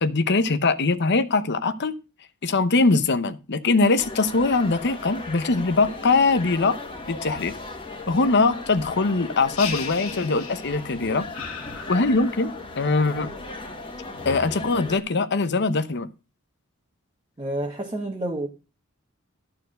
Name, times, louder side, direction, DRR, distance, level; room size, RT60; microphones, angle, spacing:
voice 1, 0.0-2.0 2.4-6.8 7.1-7.5 8.1-11.3 11.9-13.3 14.2-16.1, left 3 dB, 55° left, 0.8 m, -22 dB
sound 1, 4.0-15.0, left 2 dB, 25° left, 1.6 m, -37 dB
sound 2, 9.6-10.9 11.3-12.6, left 7 dB, 85° left, 1.9 m, -36 dB
voice 2, 17.4-18.5, right 1 dB, 20° right, 1.2 m, -29 dB
13.0 x 4.7 x 6.3 m
head